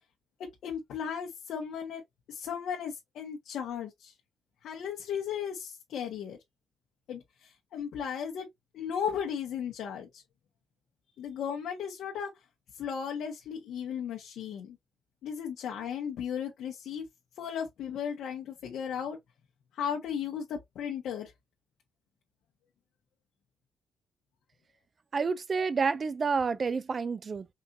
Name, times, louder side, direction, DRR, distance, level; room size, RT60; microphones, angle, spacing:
voice 1, 0.6-2.0 2.3-4.1 4.6-6.4 7.1-8.5 8.7-10.2 11.2-12.3 12.7-14.8 15.2-17.0 17.4-19.2 19.7-21.3, left 8 dB, 75° left, 1.4 m, -35 dB
voice 2, 25.1-27.5, right 5 dB, 40° right, 0.5 m, -29 dB
5.4 x 2.7 x 2.7 m
cardioid pair, 90°, 0 cm